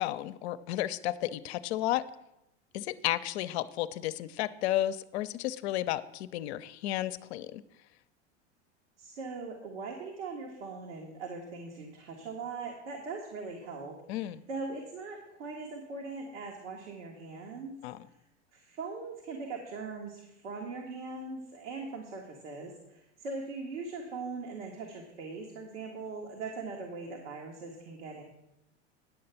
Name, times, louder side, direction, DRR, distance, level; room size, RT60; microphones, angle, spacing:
voice 1, 0.0-2.0 2.7-7.6 14.1-14.4 17.8-18.1, left 14 dB, 65° left, 14 dB, 0.7 m, -32 dB
voice 2, 9.0-17.8 18.5-28.2, right 4 dB, 80° right, 1 dB, 1.7 m, -40 dB
10.0 x 6.7 x 5.7 m, 0.87 s
hypercardioid pair, 105°, 35 cm